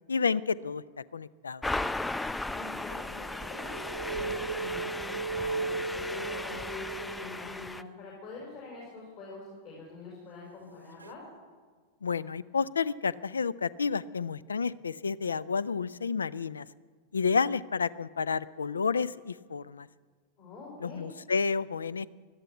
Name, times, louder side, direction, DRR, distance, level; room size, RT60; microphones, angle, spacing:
voice 1, 0.1-1.6 12.0-16.7 17.1-19.9 20.8-22.1, left 5 dB, 75° left, 21 dB, 0.4 m, -30 dB
sound 1, 1.6-7.8, left 2 dB, 5° left, 0.4 m, -36 dB
voice 2, 2.5-11.2 20.4-21.1, left 2 dB, 45° left, -4 dB, 5.2 m, -44 dB
sound 2, 3.0-7.7 11.0-11.1, right 4 dB, 75° right, 0.4 m, -36 dB
17.5 x 12.5 x 6.0 m, 1.5 s
figure-of-eight pair, 90°, 0 cm